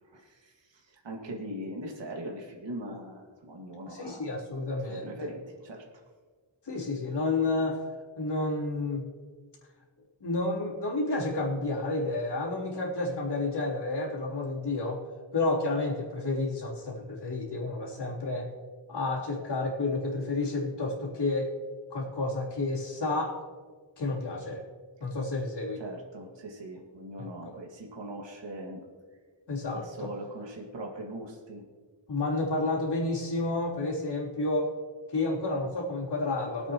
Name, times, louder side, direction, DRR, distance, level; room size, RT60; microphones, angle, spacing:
voice 1, 0.1-4.3 4.8-5.8 25.8-28.8 29.8-31.6, right 1 dB, 75° right, 0 dB, 2.1 m, -41 dB
voice 2, 3.8-5.3 6.6-7.8 8.2-9.1 10.2-15.0 15.3-18.5 18.9-21.5 21.9-23.4 24.0-24.6 25.0-25.8 27.2-27.5 29.5-30.1 32.1-34.7 35.1-36.7, left 2 dB, 65° left, -4 dB, 3.3 m, -30 dB
23.0 x 8.2 x 3.0 m, 1.5 s
wide cardioid pair, 110°, 44 cm